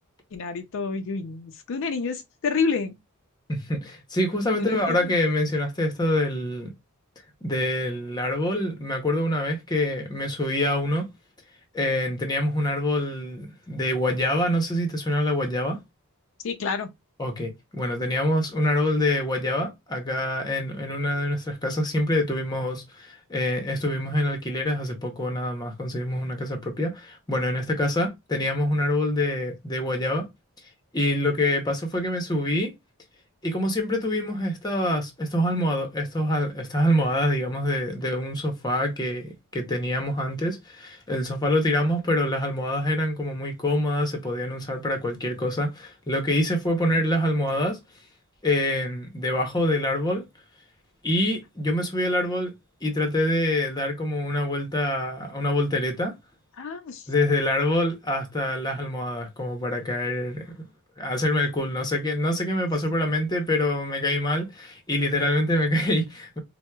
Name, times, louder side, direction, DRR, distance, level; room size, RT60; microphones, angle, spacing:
voice 1, 0.3-3.0 4.5-5.1 16.4-16.9 46.9-47.0 56.6-57.1, left 5 dB, 60° left, 0.4 m, -29 dB
voice 2, 3.5-6.7 7.4-11.1 11.7-15.8 17.2-30.3 30.9-32.7 33.4-47.8 48.4-50.2 51.0-52.5 52.8-56.1 57.1-60.6 61.0-66.4, left 1 dB, 20° left, 0.6 m, -25 dB
4.4 x 2.0 x 2.2 m
head